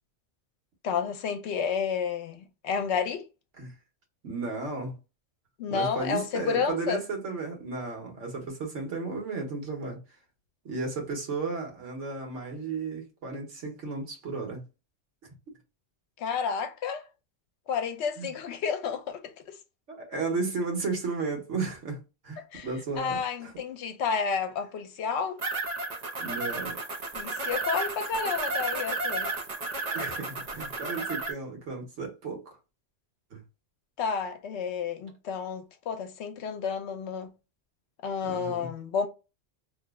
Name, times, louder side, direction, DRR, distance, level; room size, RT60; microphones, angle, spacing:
voice 1, 0.8-3.3 5.6-7.0 16.2-17.1 17.7-19.6 22.5-22.7 23.0-25.4 27.1-29.3 34.0-37.3 38.0-39.1, left 6 dB, 70° left, 0.9 m, -31 dB
voice 2, 4.2-5.0 5.7-10.0 10.6-14.6 18.2-18.3 19.9-23.5 26.2-26.8 29.9-32.6 33.3-33.4 38.2-38.7, right 3 dB, 80° right, 1.4 m, -34 dB
sound 1, 25.4-31.3, right 3 dB, 40° right, 0.7 m, -32 dB
2.9 x 2.0 x 3.4 m
omnidirectional pair, 1.2 m